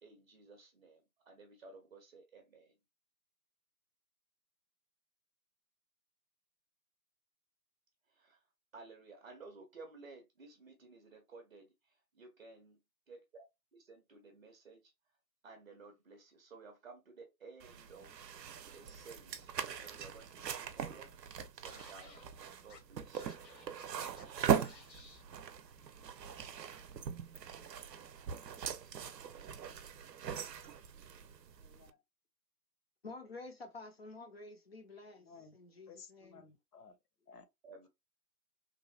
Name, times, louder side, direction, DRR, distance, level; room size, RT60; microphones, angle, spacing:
voice 1, 0.0-2.8 8.1-8.5 8.7-12.8 13.1-13.4 13.7-14.9 15.4-22.2 22.6-23.5 23.8-24.7 37.6-37.9, right 3 dB, 40° right, 0.6 m, -56 dB
sound 1, 17.6-31.9, right 8 dB, 80° right, 0.6 m, -40 dB
Scratching (performance technique), 21.6-22.2 22.7-22.8 23.1-24.2 24.5-25.2, left 3 dB, 90° left, 1.1 m, -56 dB
voice 2, 31.6-32.0 35.2-35.6 35.9-37.0 37.3-37.4, left 5 dB, 70° left, 0.8 m, -56 dB
voice 3, 33.0-35.3 35.5-36.5, left 3 dB, 40° left, 0.5 m, -50 dB
3.0 x 2.2 x 2.3 m
figure-of-eight pair, 145°, 48 cm